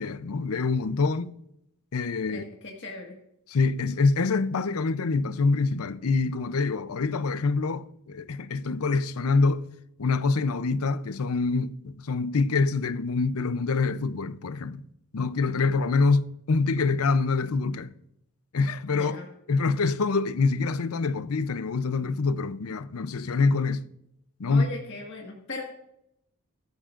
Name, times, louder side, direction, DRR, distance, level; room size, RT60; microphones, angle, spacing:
voice 1, 0.0-1.3 1.9-2.4 3.5-9.7 10.0-14.8 15.1-17.9 18.5-19.1 19.5-23.9 24.4-24.6, left 4 dB, 75° left, 0.6 m, -25 dB
voice 2, 2.3-3.2 18.9-19.3 24.5-25.6, left 3 dB, 55° left, 1.7 m, -38 dB
15.5 x 13.5 x 2.5 m
head